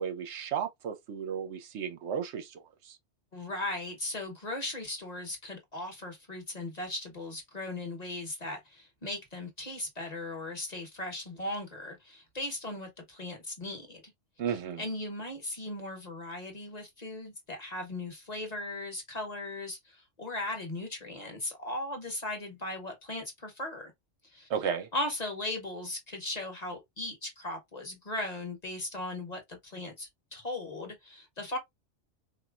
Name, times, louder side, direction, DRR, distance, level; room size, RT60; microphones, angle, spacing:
voice 1, 0.0-3.0 14.4-14.9 24.5-24.9, right 7 dB, 75° right, 0.9 m, -34 dB
voice 2, 3.3-14.0 14.8-23.9 24.2-24.5 24.9-31.6, left 2 dB, 35° left, 1.0 m, -38 dB
4.1 x 2.5 x 2.3 m
omnidirectional pair, 1.2 m